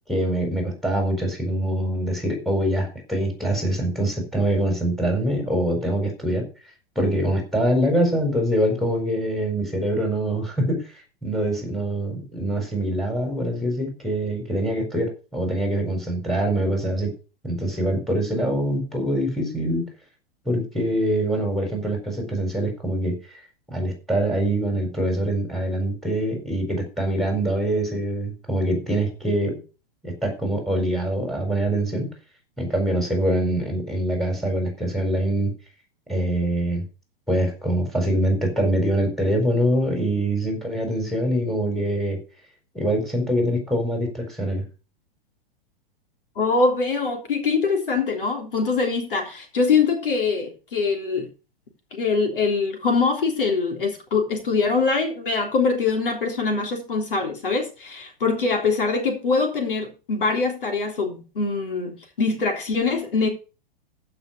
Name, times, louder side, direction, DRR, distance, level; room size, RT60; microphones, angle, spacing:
voice 1, 0.1-6.4 6.9-10.9 11.2-17.1 17.4-19.9 20.4-23.4 23.7-29.6 30.0-32.1 32.6-35.5 36.1-36.8 37.3-42.2 42.7-44.6, right 1 dB, ahead, 4.5 m, -24 dB
voice 2, 46.4-51.3 51.9-63.3, left 4 dB, 65° left, 3.4 m, -23 dB
15.0 x 5.8 x 5.1 m
figure-of-eight pair, 100°, 29 cm